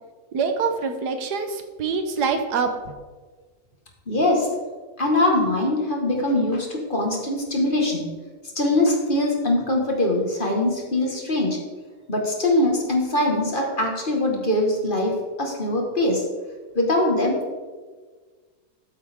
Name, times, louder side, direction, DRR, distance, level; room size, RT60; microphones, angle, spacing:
voice 1, 0.3-2.7, right 5 dB, 80° right, 6 dB, 1.6 m, -25 dB
voice 2, 4.1-4.5 5.0-8.1 8.6-11.6 12.1-15.1 15.4-16.2 16.8-17.4, left 1 dB, 30° left, 0 dB, 1.8 m, -22 dB
13.0 x 8.0 x 3.6 m, 1.4 s
omnidirectional pair, 1.7 m